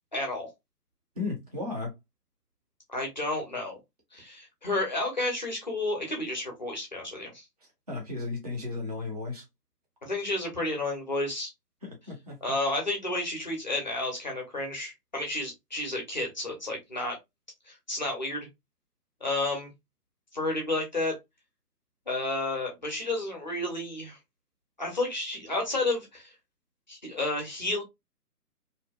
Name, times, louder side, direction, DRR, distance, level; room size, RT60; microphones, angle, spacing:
voice 1, 0.1-0.5 2.9-3.8 4.1-7.4 10.0-11.5 12.4-17.2 17.7-18.5 19.2-19.7 20.3-21.1 22.1-24.2 24.8-26.3 26.9-27.8, left 2 dB, 30° left, 0.6 m, -31 dB
voice 2, 1.1-1.9 7.9-9.4 11.8-12.6, left 3 dB, 25° right, 0.6 m, -35 dB
2.6 x 2.1 x 2.2 m
figure-of-eight pair, 145°, 48 cm